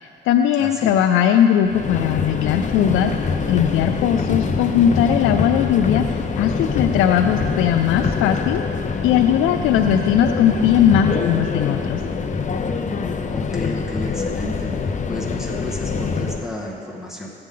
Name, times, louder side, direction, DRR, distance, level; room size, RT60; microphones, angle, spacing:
voice 1, 0.0-3.1 3.5-8.6 9.0-12.0, left 9 dB, 90° left, 6 dB, 0.4 m, -19 dB
voice 2, 0.6-1.0 13.3-14.7 15.1-17.3, left 1 dB, ahead, -4 dB, 1.7 m, -31 dB
Subway metro underground, 1.7-16.5, left 5 dB, 40° left, 0.8 m, -24 dB
15.5 x 8.7 x 3.8 m, 2.7 s
cardioid pair, 90°, 20 cm